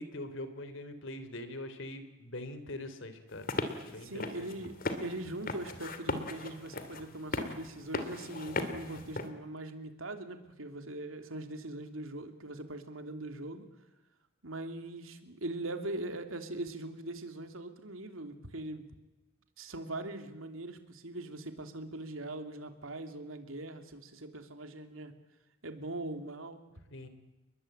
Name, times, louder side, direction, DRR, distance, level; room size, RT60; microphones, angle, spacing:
voice 1, 0.0-3.5 3.9-4.7 26.9-27.1, left 1 dB, 65° left, 10 dB, 3.4 m, -43 dB
sound 1, 3.3-9.3, left 2 dB, 45° left, 2.8 m, -38 dB
voice 2, 4.0-13.6 14.4-18.9 19.6-25.1 25.6-26.6 26.9-27.0, right 2 dB, 80° right, 7 dB, 3.0 m, -41 dB
30.0 x 22.0 x 8.9 m, 1.0 s
head